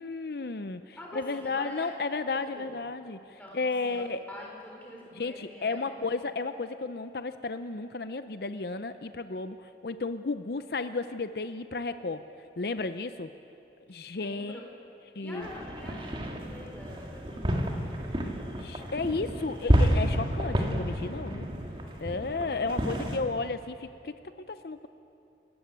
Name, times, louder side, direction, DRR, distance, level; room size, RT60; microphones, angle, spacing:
voice 1, 0.0-4.2 5.2-12.2 12.6-13.3 13.9-14.6 15.2-15.5 18.6-21.5 22.0-24.9, left 3 dB, 60° left, 10 dB, 0.6 m, -33 dB
voice 2, 1.0-1.9 2.5-2.7 3.4-4.0 4.3-6.1 14.2-14.7 15.2-18.0, left 1 dB, 10° left, -2 dB, 4.3 m, -45 dB
sound 1, 15.4-23.2, equal, 30° right, 2.0 m, -30 dB
27.0 x 14.5 x 9.1 m, 2.7 s
head